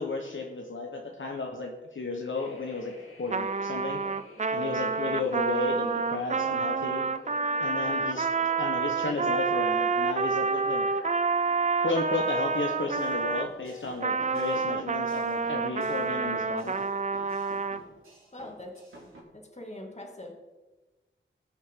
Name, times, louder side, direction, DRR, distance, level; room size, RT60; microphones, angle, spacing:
voice 1, 0.0-4.0 4.5-7.1 7.6-8.3 8.6-10.9 11.8-16.8, left 3 dB, 70° left, 1 dB, 1.2 m, -33 dB
sound 1, 2.3-16.1, left 2 dB, 90° left, 2.3 m, -50 dB
Trumpet, 3.3-13.5 14.0-17.8, right 4 dB, 35° right, 0.4 m, -28 dB
sound 2, 12.9-19.2, right 1 dB, 85° right, 3.0 m, -51 dB
voice 2, 18.3-18.7 19.3-20.3, left 1 dB, 35° left, 1 dB, 2.3 m, -42 dB
18.5 x 6.4 x 3.7 m, 1.2 s
wide cardioid pair, 55°, 21 cm